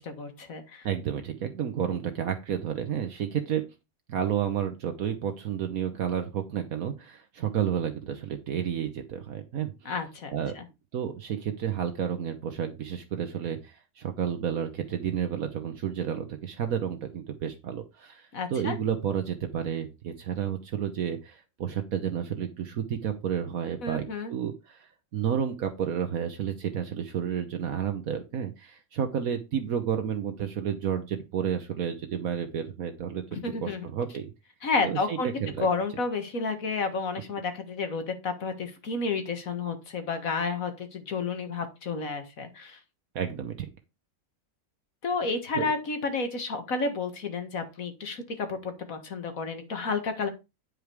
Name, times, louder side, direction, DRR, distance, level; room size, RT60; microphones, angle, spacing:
voice 1, 0.0-0.9 9.9-10.6 18.3-18.8 23.8-24.3 33.3-33.8 34.6-35.3 35.6-42.8 45.0-50.3, left 4 dB, 65° left, 7 dB, 2.0 m, -31 dB
voice 2, 0.8-3.6 4.1-9.9 10.3-10.5 10.9-33.2 33.6-34.3 34.8-35.7 43.1-43.5 45.5-45.7, right 8 dB, 70° right, 6 dB, 1.4 m, -31 dB
9.4 x 5.1 x 4.7 m, 0.26 s
omnidirectional pair, 1.6 m